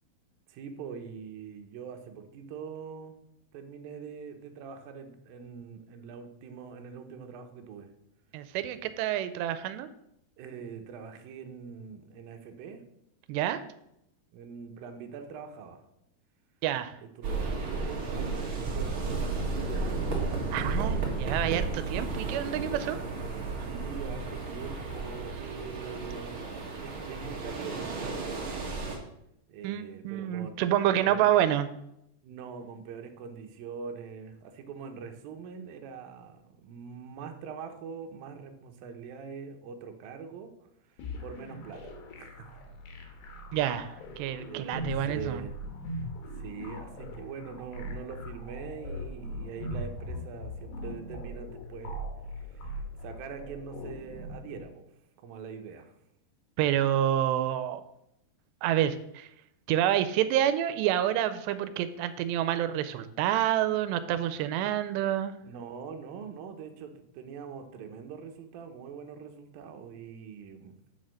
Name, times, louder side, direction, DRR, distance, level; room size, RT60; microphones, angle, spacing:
voice 1, 0.5-3.2 3.5-7.9 10.4-12.9 14.3-15.8 17.0-20.2 23.6-28.3 29.5-31.3 32.2-42.6 44.5-45.6 46.4-52.0 52.4-52.7 53.0-54.9 55.2-56.0 65.4-70.8, right 6 dB, 70° right, 5 dB, 2.4 m, -43 dB
voice 2, 8.3-9.9 13.3-13.6 16.6-16.9 20.5-23.0 29.6-31.7 43.5-45.4 56.6-57.8 58.6-59.3 59.7-65.3, right 11 dB, 90° right, 12 dB, 2.7 m, -28 dB
sound 1, 17.2-29.0, right 3 dB, 50° right, 1.6 m, -33 dB
sound 2, 41.0-54.6, left 1 dB, 80° left, 3.6 m, -40 dB
7.0 x 6.4 x 6.3 m, 0.79 s
omnidirectional pair, 4.8 m